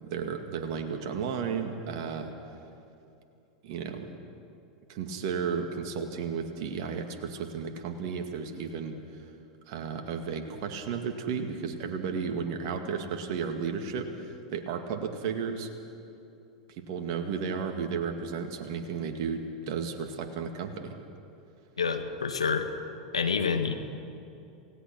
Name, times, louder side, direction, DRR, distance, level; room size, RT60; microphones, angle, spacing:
voice 1, 0.0-2.3 3.6-4.1 4.9-9.0 9.7-15.7 16.7-20.9, right 6 dB, 55° right, 5 dB, 2.2 m, -33 dB
voice 2, 21.8-22.7 23.1-23.8, left 5 dB, 85° left, 7 dB, 1.7 m, -28 dB
28.0 x 17.5 x 6.1 m, 2.7 s
hypercardioid pair, 90°, 3 cm